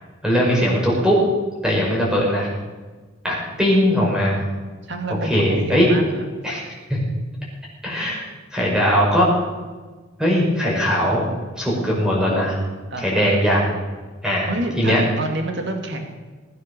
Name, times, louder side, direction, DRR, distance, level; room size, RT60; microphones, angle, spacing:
voice 1, 0.2-1.2 1.6-2.5 3.2-4.4 5.3-5.9 6.4-6.6 6.9-7.0 7.8-8.2 8.5-9.3 10.2-11.2 11.6-12.6 13.0-13.7 14.2-14.5 14.8-15.0, equal, 5° right, -4 dB, 5.6 m, -19 dB
voice 2, 4.8-6.2 12.9-13.4 14.5-16.0, right 1 dB, 60° right, 4 dB, 2.2 m, -28 dB
20.5 x 9.7 x 6.8 m, 1.4 s
head